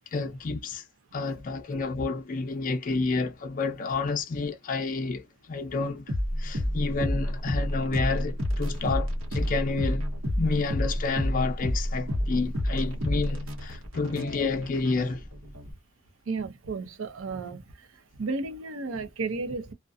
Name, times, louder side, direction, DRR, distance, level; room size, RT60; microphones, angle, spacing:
voice 1, 0.1-0.8 1.1-6.1 6.4-10.0 10.4-15.2, left 3 dB, 40° left, 0.4 m, -29 dB
sound 1, 6.1-15.7, equal, 85° right, 0.9 m, -29 dB
voice 2, 16.3-17.7 18.2-19.7, right 3 dB, 70° right, 0.5 m, -33 dB
2.4 x 2.1 x 2.5 m
head